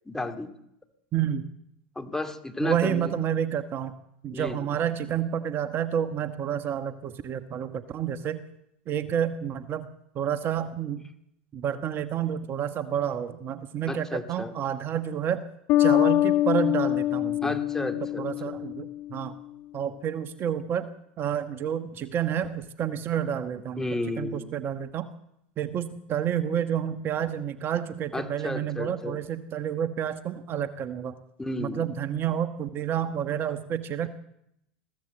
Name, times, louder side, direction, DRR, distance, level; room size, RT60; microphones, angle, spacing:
voice 1, 0.1-0.5 2.0-3.1 4.3-4.7 13.9-14.5 17.4-18.5 23.8-24.4 28.1-29.2 31.4-31.9, left 2 dB, 10° left, 6 dB, 2.4 m, -33 dB
voice 2, 1.1-1.5 2.6-3.9 4.2-8.4 8.9-9.9 10.1-11.0 11.5-15.4 15.8-17.6 18.2-19.3 19.7-20.9 21.2-23.9 24.2-25.1 25.6-31.1 31.6-34.1, right 9 dB, 40° right, 10 dB, 1.3 m, -29 dB
Bass guitar, 15.7-19.2, left 14 dB, 55° left, 1.4 m, -24 dB
21.5 x 15.5 x 7.9 m, 0.79 s
hypercardioid pair, 90°, 6 cm